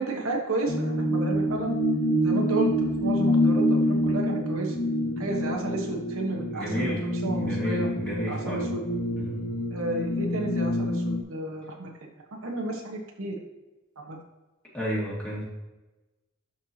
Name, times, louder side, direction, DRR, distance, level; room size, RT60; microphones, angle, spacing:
voice 1, 0.0-1.7 2.2-2.7 3.0-4.7 5.2-7.9 8.3-8.8 9.7-11.9 12.4-13.4 14.0-14.2, right 2 dB, 75° right, 1 dB, 1.3 m, -32 dB
sound 1, 0.7-11.2, equal, 50° left, 1.8 m, -26 dB
voice 2, 6.5-8.7 9.2-9.4 14.7-15.4, equal, 5° left, -6 dB, 2.3 m, -32 dB
11.5 x 4.7 x 2.9 m, 1.1 s
head